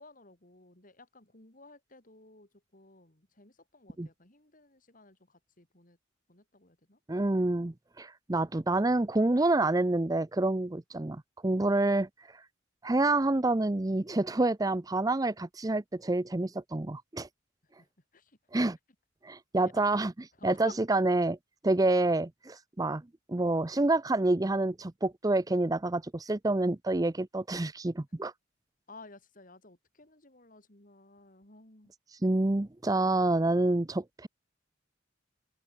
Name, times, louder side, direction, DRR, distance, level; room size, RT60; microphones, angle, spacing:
voice 1, 0.0-6.0 6.3-7.0 17.6-18.4 19.6-19.8 20.3-20.8 28.9-31.9, left 3 dB, 45° left, 3.9 m, -54 dB
voice 2, 7.1-12.4 12.8-17.3 18.5-18.8 19.2-20.1 20.4-21.4 21.6-23.0 23.3-28.3 32.2-34.3, right 2 dB, 20° right, 0.5 m, -28 dB
open air
head